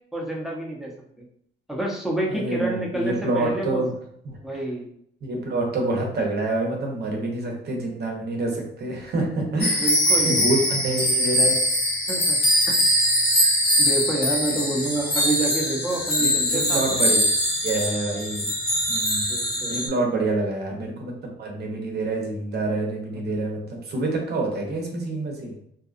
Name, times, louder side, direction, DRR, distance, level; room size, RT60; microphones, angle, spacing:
voice 1, 0.1-0.9 1.7-3.8 4.4-4.9 9.7-10.4 12.1-12.4 12.7-12.8 13.0-13.1 13.8-17.0 19.3-19.8, right 2 dB, ahead, -3 dB, 0.8 m, -28 dB
voice 2, 2.3-3.9 4.2-4.4 5.2-9.9 10.2-11.6 16.2-17.2 17.6-18.5 18.9-19.3 19.6-25.5, right 2 dB, 55° right, 1 dB, 0.8 m, -27 dB
sound 1, 9.6-19.9, equal, 50° left, 1.0 m, -22 dB
2.7 x 2.2 x 2.5 m, 0.69 s
cardioid pair, 90°, 20 cm